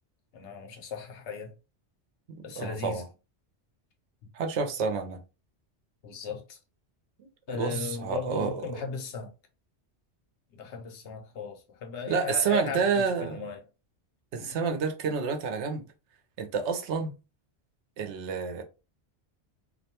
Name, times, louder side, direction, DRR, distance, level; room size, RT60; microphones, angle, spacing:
voice 1, 0.3-1.5 2.4-3.0 6.0-6.6 7.5-9.3 10.5-13.7 14.4-14.6, left 5 dB, 80° left, 0.9 m, -37 dB
voice 2, 2.3-3.1 4.3-5.2 7.5-8.8 12.1-13.4 14.3-15.8 16.4-17.1 18.0-18.6, right 5 dB, 80° right, 0.9 m, -29 dB
2.5 x 2.1 x 2.8 m
omnidirectional pair, 1.2 m